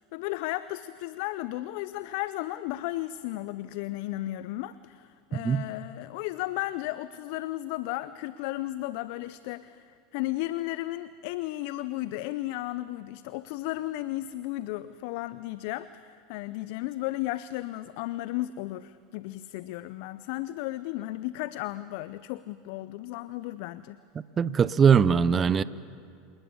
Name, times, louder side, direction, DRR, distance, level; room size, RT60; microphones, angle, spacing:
voice 1, 0.0-24.0, left 16 dB, 60° left, 15 dB, 0.5 m, -34 dB
voice 2, 24.4-25.6, right 6 dB, 30° right, 18 dB, 0.7 m, -21 dB
27.0 x 19.5 x 7.1 m, 2.3 s
hypercardioid pair, 85°, 0 cm